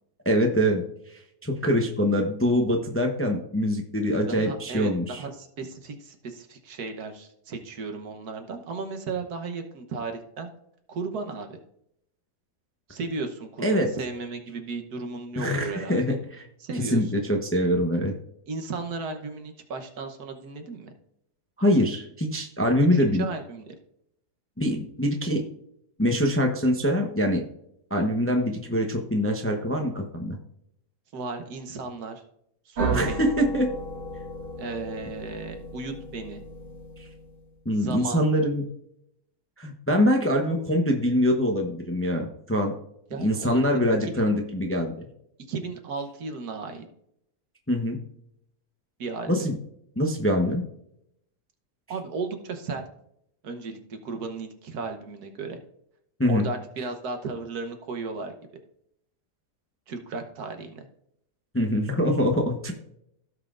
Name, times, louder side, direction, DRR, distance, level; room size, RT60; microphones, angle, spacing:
voice 1, 0.2-0.8 1.4-5.2 13.6-13.9 15.4-16.4 16.9-18.1 21.6-23.3 24.6-25.4 26.0-27.4 27.9-30.4 32.9-33.7 37.6-38.7 39.6-42.7 43.2-44.9 47.7-48.0 49.3-49.6 50.0-50.6 56.2-56.4 61.5-62.7, equal, 10° left, 2 dB, 0.7 m, -24 dB
voice 2, 4.1-10.5 10.9-11.6 12.9-16.2 16.6-17.0 18.5-20.9 22.9-23.7 31.1-32.2 32.6-33.3 34.6-36.4 37.8-38.3 43.1-43.7 44.0-44.1 45.5-46.8 49.0-49.5 51.9-52.8 53.4-55.6 56.3-58.3 59.9-60.9, right 4 dB, 70° right, 5 dB, 1.6 m, -35 dB
sound 1, 32.8-37.5, right 3 dB, 90° right, 2.7 m, -34 dB
16.5 x 5.7 x 2.5 m, 0.75 s
omnidirectional pair, 1.7 m